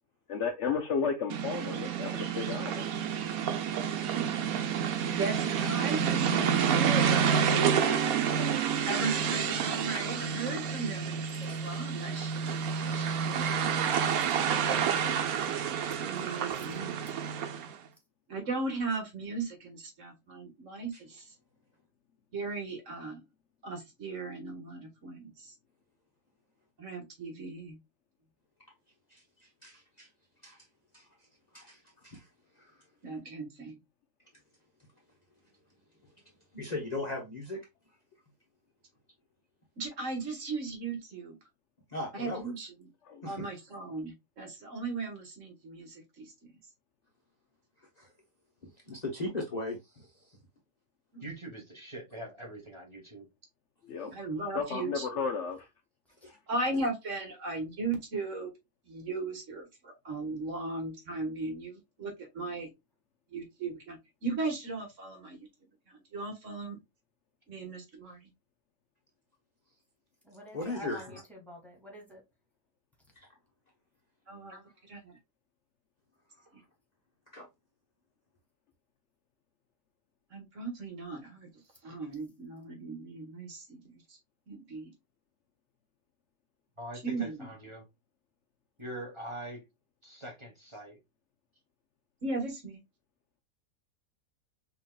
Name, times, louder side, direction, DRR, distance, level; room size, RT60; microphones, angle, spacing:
voice 1, 0.3-2.9 43.0-43.2 53.8-54.1 54.5-55.7 56.3-56.4, left 5 dB, 65° left, 0.8 m, -33 dB
sound 1, 1.3-17.7, right 7 dB, 85° right, 1.2 m, -29 dB
voice 2, 5.6-7.7 8.9-12.4 12.8-13.6 16.0-17.0 18.3-21.3 22.3-23.2 23.6-25.5 26.8-27.8 33.0-33.8 39.8-41.4 42.1-42.7 43.3-46.5 51.1-51.2 54.1-55.1 56.5-58.5 58.9-62.7 63.3-65.5 65.9-66.8 67.5-68.2 74.3-74.6 74.9-75.1 80.3-81.5 81.8-83.8 84.1-84.2 84.5-84.9 87.0-87.4 92.2-92.8, right 3 dB, 60° right, 1.6 m, -37 dB
voice 3, 13.7-14.2 16.6-16.7 70.2-72.2, equal, ahead, 1.8 m, -49 dB
voice 4, 29.1-30.1 30.4-30.6 30.9-31.1 31.5-32.3 32.6-32.8 36.5-37.6 41.9-42.5 43.2-43.5 48.0-48.1 48.6-50.4 56.2-56.3 70.5-71.2 74.5-74.6 77.3-77.5, left 2 dB, 35° left, 0.9 m, -38 dB
voice 5, 51.2-53.2 86.8-87.8 88.8-89.6 90.0-91.0, right 1 dB, 20° right, 1.3 m, -43 dB
5.6 x 3.0 x 2.2 m
omnidirectional pair, 1.5 m